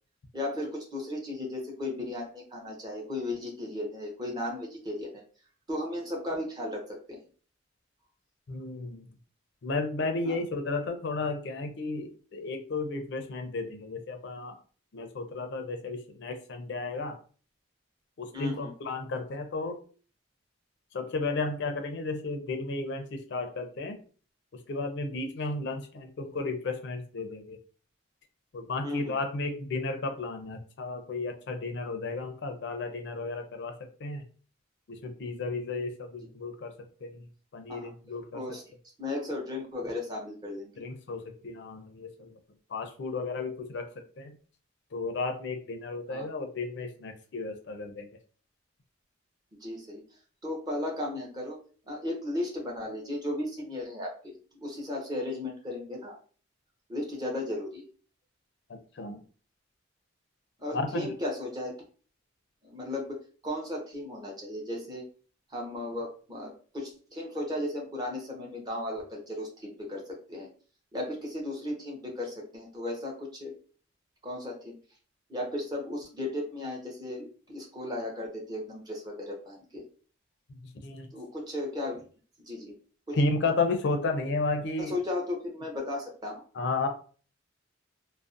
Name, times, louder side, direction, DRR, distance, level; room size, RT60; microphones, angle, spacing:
voice 1, 0.3-5.2 5.7-6.8 7.1-7.2 10.2-10.4 18.3-18.7 28.8-29.2 37.7-37.9 38.3-38.6 39.0-40.7 46.1-46.3 49.6-50.0 50.4-51.6 51.9-56.2 56.9-57.9 60.6-61.7 62.6-63.2 63.4-65.0 65.5-70.5 70.9-73.5 74.2-74.7 75.3-79.8 81.1-82.0 82.4-82.7 83.1-83.2 84.8-86.4, left 1 dB, 20° right, -2 dB, 0.6 m, -35 dB
voice 2, 8.5-9.0 9.6-14.5 14.9-17.2 18.2-19.8 20.9-24.0 24.7-27.6 28.5-34.2 34.9-36.7 37.0-37.2 37.5-38.4 40.8-42.3 42.7-43.8 44.2-44.3 44.9-48.1 58.7-59.2 60.7-61.1 80.8-81.1 83.1-85.0 86.5-86.9, left 3 dB, 55° left, 5 dB, 0.4 m, -33 dB
2.5 x 2.0 x 2.4 m, 0.41 s
head